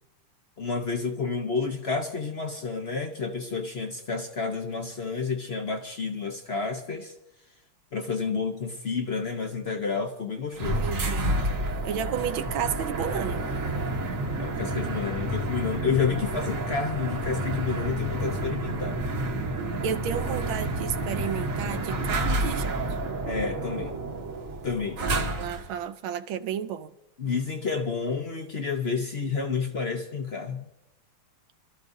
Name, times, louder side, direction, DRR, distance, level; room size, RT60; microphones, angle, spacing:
voice 1, 0.6-7.1 7.9-10.8 14.4-19.0 23.3-24.0 24.6-25.0 27.2-30.7, left 5 dB, 55° left, 0.7 m, -30 dB
sound 1, 10.6-25.7, right 2 dB, 45° right, 1.4 m, -30 dB
voice 2, 10.8-11.4 11.8-13.4 19.8-23.0 25.3-26.9, right 8 dB, 70° right, 1.5 m, -32 dB
27.0 x 13.5 x 2.7 m
omnidirectional pair, 2.4 m